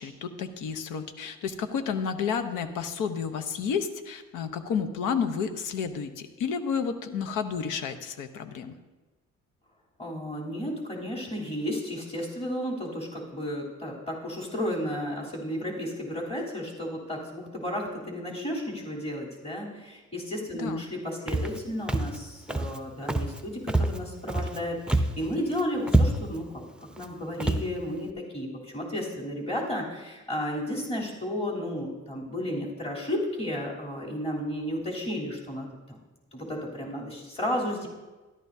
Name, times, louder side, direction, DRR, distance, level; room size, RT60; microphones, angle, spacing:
voice 1, 0.0-8.7 20.6-20.8, left 6 dB, 90° left, 9 dB, 1.0 m, -31 dB
voice 2, 10.0-26.6 26.9-36.0 36.3-37.9, equal, 20° left, -4 dB, 3.4 m, -33 dB
Walk footsteps, 21.3-21.6 21.9-22.2 22.5-22.8 23.1-23.4 23.7-24.6 24.9-25.2 25.5-25.6 25.9-26.4 26.9-27.1 27.4-27.7, right 1 dB, 5° right, 0.6 m, -25 dB
13.5 x 11.5 x 2.7 m, 1.2 s
cardioid pair, 90°, 30 cm